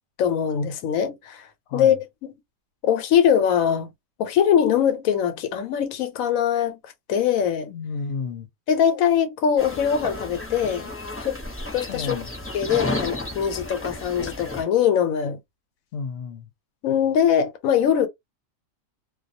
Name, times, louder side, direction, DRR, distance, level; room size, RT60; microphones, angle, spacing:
voice 1, 0.2-1.5 1.7-2.0 2.2-2.3 2.8-3.9 4.2-6.8 7.1-7.7 8.7-10.9 11.2-11.4 11.7-12.2 12.5-15.4 16.8-18.1, left 8 dB, 90° left, 1.1 m, -22 dB
voice 2, 7.7-8.5 11.9-12.3 15.9-16.5, left 5 dB, 60° left, 0.8 m, -32 dB
sound 1, 9.6-14.6, left 2 dB, 10° left, 0.7 m, -32 dB
2.3 x 2.2 x 2.5 m
omnidirectional pair, 1.4 m